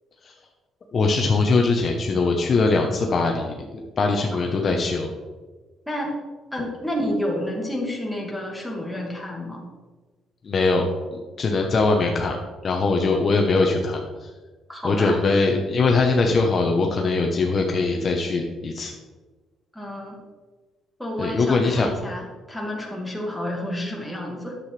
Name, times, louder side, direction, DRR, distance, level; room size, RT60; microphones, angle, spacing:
voice 1, 0.9-5.1 10.4-12.4 12.6-14.3 14.8-18.9 21.2-21.9, left 3 dB, 40° left, 2 dB, 0.9 m, -21 dB
voice 2, 4.0-4.4 5.9-6.1 6.5-9.6 14.7-15.2 19.7-20.2 21.0-24.6, left 1 dB, ahead, -2 dB, 2.0 m, -30 dB
10.5 x 7.7 x 3.3 m, 1.3 s
cardioid pair, 125°, 0 cm